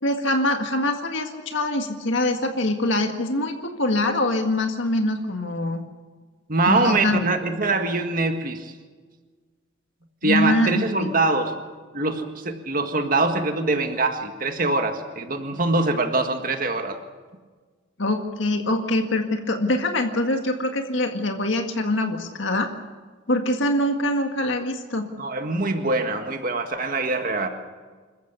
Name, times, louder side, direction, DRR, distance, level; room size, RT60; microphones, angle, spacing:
voice 1, 0.0-5.8 6.7-7.2 10.2-10.7 11.0-11.1 18.0-22.7 23.3-25.1, left 1 dB, 70° left, 4 dB, 1.9 m, -24 dB
voice 2, 6.5-8.7 10.2-11.6 11.9-17.0 25.2-27.5, right 3 dB, 45° right, 5 dB, 1.8 m, -23 dB
27.0 x 14.5 x 8.3 m, 1.4 s
head